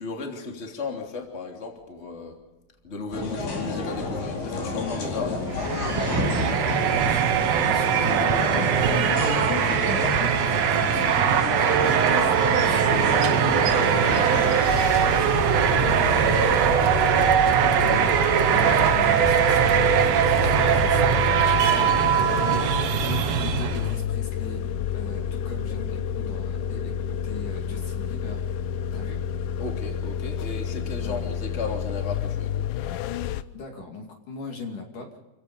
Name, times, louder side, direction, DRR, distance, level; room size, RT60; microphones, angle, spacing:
voice 1, 0.0-2.4 2.8-5.8 22.3-22.7 29.6-32.7, left 4 dB, 20° left, 1 dB, 3.0 m, -35 dB
sound 1, 3.1-14.5, left 2 dB, 75° left, 6.4 m, -29 dB
sound 2, 5.5-24.0, right 8 dB, 75° right, 1.5 m, -21 dB
voice 2, 6.9-9.1 9.4-11.6 12.2-13.3 13.8-16.9 17.5-18.2 18.5-24.6 24.9-28.4 28.9-29.2 31.0-31.3 33.5-35.1, left 3 dB, 55° left, 2 dB, 3.7 m, -39 dB
sound 3, 14.0-33.4, left 9 dB, 90° left, 1.8 m, -30 dB
29.5 x 16.5 x 5.3 m, 1.0 s
omnidirectional pair, 4.7 m